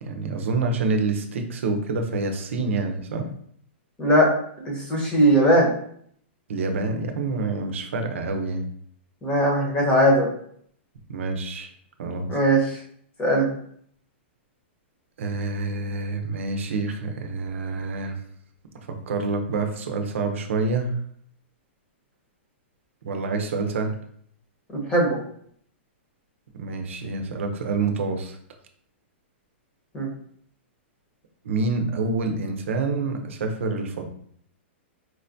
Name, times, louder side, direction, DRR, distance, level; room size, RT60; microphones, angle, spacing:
voice 1, 0.0-3.3 6.5-8.7 11.1-11.7 12.0-12.3 15.2-18.2 18.9-21.0 23.0-24.0 26.5-28.4 31.4-34.0, right 3 dB, 80° right, 4 dB, 0.6 m, -27 dB
voice 2, 4.0-4.3 4.6-5.7 9.2-10.3 12.3-12.8 13.2-13.5 24.7-25.2 29.9-30.1, right 1 dB, 15° left, -2 dB, 1.0 m, -19 dB
4.5 x 2.2 x 2.6 m, 0.64 s
hypercardioid pair, 150°, 7 cm